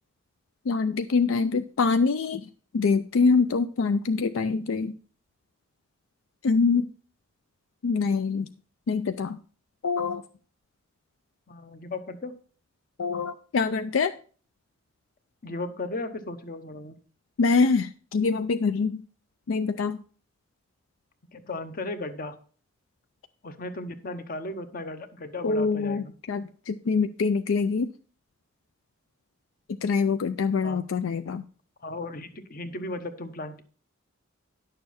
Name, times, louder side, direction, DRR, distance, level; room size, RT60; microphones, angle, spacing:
voice 1, 0.7-2.5 2.7-4.9 6.4-6.9 7.8-8.5 8.9-9.4 9.8-10.2 13.0-14.1 17.4-19.0 19.5-20.0 25.4-27.9 29.8-31.4, left 4 dB, 75° left, 10 dB, 0.4 m, -24 dB
voice 2, 11.5-12.3 15.4-17.0 21.3-22.4 23.4-26.1 30.6-30.9 31.8-33.6, left 2 dB, 45° left, 9 dB, 1.0 m, -36 dB
10.5 x 6.8 x 4.2 m, 0.41 s
head